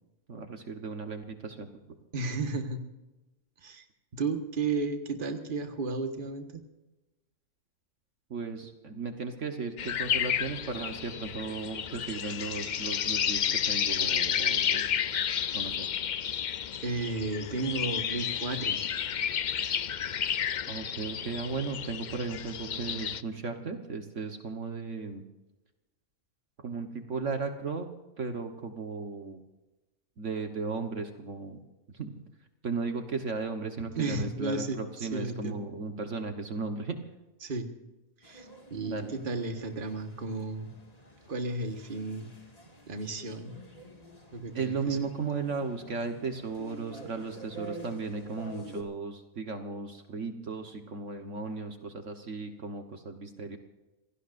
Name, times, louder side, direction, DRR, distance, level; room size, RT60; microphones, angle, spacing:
voice 1, 0.3-1.8 8.3-14.8 15.5-15.9 20.7-25.2 26.6-27.9 28.2-29.4 30.2-31.6 31.9-32.1 32.6-37.0 38.9-39.1 44.5-53.6, right 4 dB, 60° right, 5 dB, 1.6 m, -36 dB
voice 2, 2.1-2.8 3.6-3.8 4.1-6.6 16.8-18.8 34.0-35.6 37.4-37.7 38.2-40.7 41.2-42.3 42.9-43.6 44.3-45.0, right 3 dB, 40° right, 6 dB, 1.6 m, -33 dB
sound 1, 9.8-23.2, left 8 dB, 65° left, 0.4 m, -31 dB
sound 2, 38.2-48.8, equal, 25° left, 2.2 m, -48 dB
28.0 x 17.5 x 2.6 m, 1.1 s
omnidirectional pair, 1.5 m